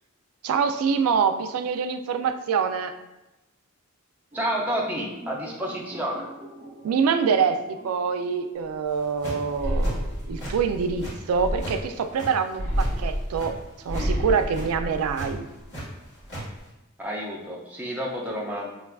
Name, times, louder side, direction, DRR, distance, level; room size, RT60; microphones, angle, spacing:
voice 1, 0.4-3.0 6.8-13.6 13.9-15.5, right 6 dB, 90° right, 9 dB, 0.3 m, -25 dB
voice 2, 4.3-6.3 17.0-18.7, equal, 10° right, -3 dB, 0.5 m, -30 dB
sound 1, 4.3-9.7, right 1 dB, 45° right, 0.9 m, -45 dB
sound 2, 8.9-9.5 9.8-10.5 10.8-11.8 12.0-13.5 13.8-14.1 14.4-14.7 15.1-15.8 16.1-16.4, right 1 dB, 55° left, 1.5 m, -37 dB
sound 3, 9.5-11.9 12.5-15.6 16.0-16.6, equal, 35° left, 1.4 m, -29 dB
5.7 x 2.3 x 2.3 m, 0.98 s
head